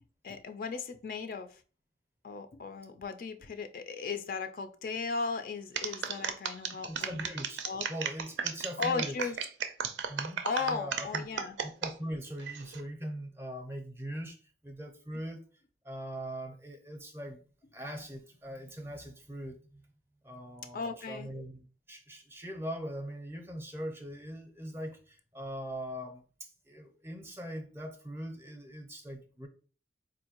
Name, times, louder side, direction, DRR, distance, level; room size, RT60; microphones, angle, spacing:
voice 1, 0.2-1.6 2.2-7.3 7.6-7.9 8.8-9.4 10.4-11.6 20.7-21.3, left 5 dB, 50° left, 0.3 m, -36 dB
sound 1, 5.7-11.9 12.4-12.8, right 7 dB, 85° right, 0.5 m, -34 dB
voice 2, 6.9-7.6 7.9-9.2 10.1-11.3 11.6-14.4 14.6-15.4 15.8-17.4 17.7-19.8 20.2-29.5, equal, 15° right, 0.5 m, -41 dB
4.2 x 2.6 x 2.9 m
head